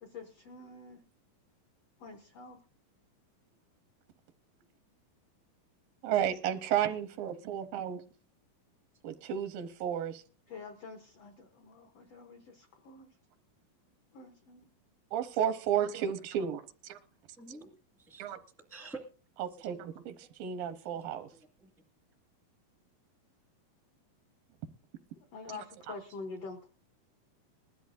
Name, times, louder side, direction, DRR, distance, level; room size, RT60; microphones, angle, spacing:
voice 1, 0.0-1.0 2.0-2.6 6.1-6.4 10.5-13.1 14.1-14.7 25.2-26.7, left 4 dB, 75° left, 1.4 m, -47 dB
voice 2, 6.0-8.0 9.0-10.2 15.1-17.0 18.2-18.4 19.4-21.3, right 9 dB, 80° right, 2.5 m, -33 dB
voice 3, 17.4-17.7 18.0-18.3 18.7-19.0 19.5-19.8 20.9-21.7, right 3 dB, 5° left, 0.5 m, -48 dB
20.0 x 12.5 x 2.6 m
omnidirectional pair, 4.1 m